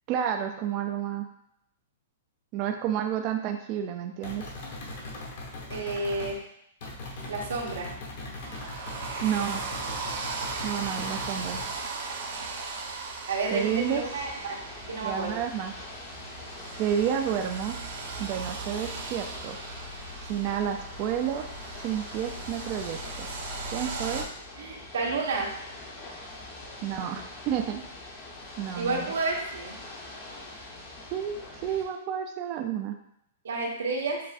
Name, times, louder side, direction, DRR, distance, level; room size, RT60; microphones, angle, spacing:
voice 1, 0.1-1.3 2.5-4.5 9.2-9.6 10.6-11.6 13.5-14.0 15.0-15.7 16.8-17.8 18.2-19.6 20.3-21.5 21.8-23.3 23.7-24.3 26.8-27.8 28.6-29.1 31.1-31.4 31.6-32.9, right 9 dB, 30° right, 4 dB, 0.3 m, -30 dB
sound 1, 4.2-6.4 6.8-11.8, left 2 dB, 50° left, 1.1 m, -40 dB
voice 2, 5.7-6.4 7.3-7.9 13.3-14.6 14.9-15.4 24.6-25.5 28.7-29.8 33.4-34.2, right 3 dB, 90° right, 0 dB, 1.1 m, -30 dB
sound 2, 8.4-24.2, right 3 dB, 55° right, 0.7 m, -37 dB
Ocean / Boat Water vehicle, 13.5-31.8, left 2 dB, 30° left, 0.8 m, -44 dB
7.4 x 2.5 x 2.4 m, 0.74 s
hypercardioid pair, 165°, 0 cm